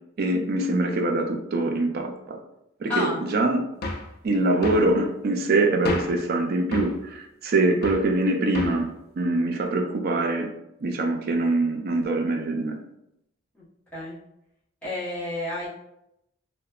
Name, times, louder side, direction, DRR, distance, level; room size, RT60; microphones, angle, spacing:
voice 1, 0.2-2.4 2.8-3.6 4.2-8.9 9.2-10.5 10.8-12.8, right 2 dB, 50° right, 3 dB, 0.4 m, -24 dB
voice 2, 2.9-3.2 13.5-13.6 13.9-14.2 14.8-15.7, left 2 dB, 5° left, -10 dB, 0.9 m, -30 dB
sound 1, 3.8-4.1 4.6-4.9 5.9-6.2 6.7-7.0 7.8-8.1 8.5-8.9, left 2 dB, 50° left, 0.3 m, -31 dB
2.7 x 2.1 x 2.3 m, 0.82 s
head